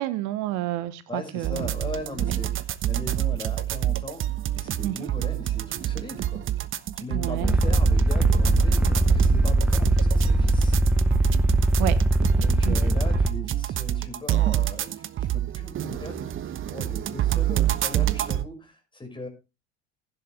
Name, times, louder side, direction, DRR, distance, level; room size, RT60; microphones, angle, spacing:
voice 1, 0.0-1.7 2.2-2.3 4.8-5.1 7.1-7.6 11.8-12.0 12.6-12.9, right 15 dB, 55° right, 14 dB, 1.1 m, -30 dB
voice 2, 1.1-6.4 7.0-10.8 12.4-19.3, left 2 dB, 15° left, 4 dB, 5.8 m, -39 dB
sound 1, 1.4-18.4, right 12 dB, 35° right, 1.1 m, -27 dB
sound 2, 7.4-13.3, right 1 dB, 5° right, 0.8 m, -21 dB
15.5 x 10.5 x 3.3 m, 0.28 s
hypercardioid pair, 70°, 34 cm